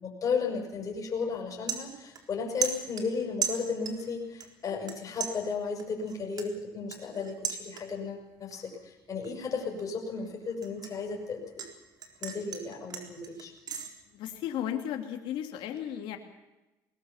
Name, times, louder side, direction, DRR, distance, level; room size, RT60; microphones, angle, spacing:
voice 1, 0.0-11.6 12.2-13.5, left 5 dB, 40° left, 0 dB, 6.6 m, -34 dB
sound 1, 0.8-1.0 1.3-2.4 2.6-4.1 4.4-4.9 5.2-8.1 8.5-8.8 9.2-11.7 12.0-13.9, right 8 dB, 50° right, 4.0 m, -36 dB
voice 2, 14.1-16.2, left 10 dB, 70° left, 4 dB, 2.6 m, -34 dB
20.0 x 20.0 x 7.2 m, 1.1 s
supercardioid pair, 85°, 9 cm